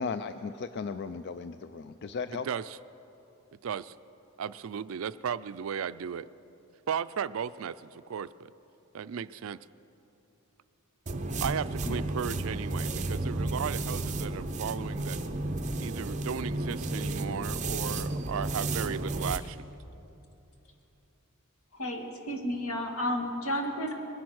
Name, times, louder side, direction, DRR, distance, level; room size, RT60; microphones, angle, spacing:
voice 1, 0.0-2.5 11.9-12.0, left 5 dB, 50° left, 10 dB, 0.4 m, -36 dB
voice 2, 2.3-2.8 3.6-3.9 4.4-6.3 6.9-8.5 8.9-9.6 11.4-15.2 15.8-19.7, right 7 dB, 70° right, 16 dB, 0.4 m, -35 dB
sound 1, 11.1-19.4, right 2 dB, 35° right, 0.7 m, -32 dB
voice 3, 21.7-23.9, equal, 80° left, 3 dB, 1.9 m, -32 dB
21.5 x 10.5 x 6.4 m, 3.0 s
head